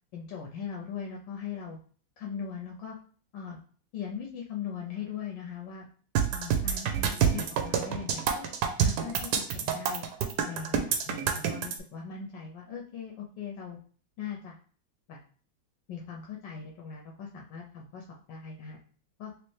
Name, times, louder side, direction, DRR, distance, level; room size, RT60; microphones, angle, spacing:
voice 1, 0.1-1.8 2.2-3.0 3.3-3.6 3.9-5.9 6.3-8.4 8.8-10.1 10.4-13.8 14.2-14.6 15.1-15.2 15.9-18.8 19.2-19.3, left 7 dB, 75° left, 0 dB, 1.2 m, -40 dB
sound 1, 6.2-11.8, right 8 dB, 70° right, 1.0 m, -27 dB
3.1 x 3.0 x 3.1 m, 0.44 s
omnidirectional pair, 2.1 m